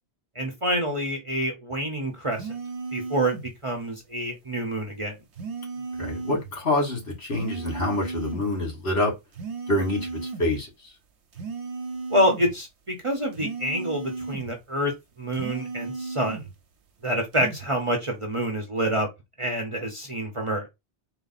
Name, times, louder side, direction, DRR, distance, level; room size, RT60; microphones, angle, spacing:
voice 1, 0.3-2.5 2.9-3.3 3.6-5.2 12.1-14.9 15.2-16.4 17.0-19.1 19.4-20.7, equal, 30° right, 0.9 m, -27 dB
sound 1, 2.3-3.5 5.4-6.5 7.4-8.5 9.3-10.5 11.3-12.5 13.3-14.5 15.3-16.5 17.3-17.7, right 4 dB, 80° right, 1.1 m, -35 dB
voice 2, 6.0-9.1 9.7-10.9, left 1 dB, 70° left, 2.3 m, -26 dB
4.0 x 2.1 x 4.0 m
omnidirectional pair, 1.1 m